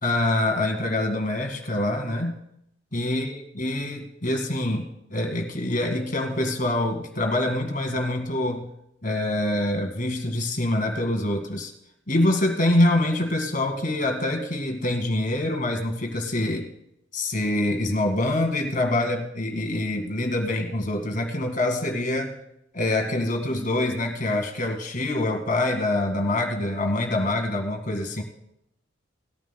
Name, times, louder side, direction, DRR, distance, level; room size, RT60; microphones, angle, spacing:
voice 1, 0.0-2.4 2.9-8.7 9.0-11.7 12.1-16.7 17.1-22.4 22.7-28.2, left 1 dB, 45° left, 4 dB, 2.0 m, -25 dB
20.0 x 13.5 x 2.3 m, 0.79 s
head